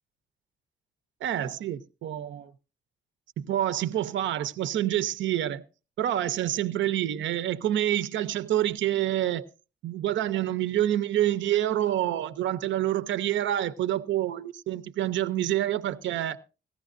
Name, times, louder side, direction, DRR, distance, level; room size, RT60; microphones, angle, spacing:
voice 1, 1.2-2.5 3.4-5.6 6.0-9.5 9.8-16.4, right 12 dB, 70° right, 0.7 m, -27 dB
17.5 x 14.5 x 2.5 m
cardioid pair, 90°, 20 cm